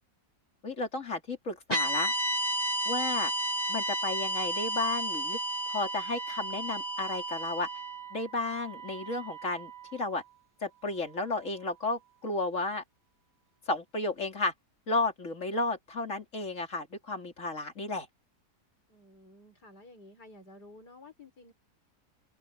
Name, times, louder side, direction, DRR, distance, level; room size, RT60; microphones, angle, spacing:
voice 1, 0.6-2.1 2.8-3.3 3.7-5.4 5.7-7.7 8.1-10.2 10.6-12.8 13.7-14.5 14.9-18.1, left 2 dB, 50° left, 3.3 m, -33 dB
sound 1, 1.7-10.0, right 1 dB, 25° right, 2.8 m, -33 dB
voice 2, 18.9-21.5, left 2 dB, 85° left, 5.9 m, -53 dB
omnidirectional pair, 1.7 m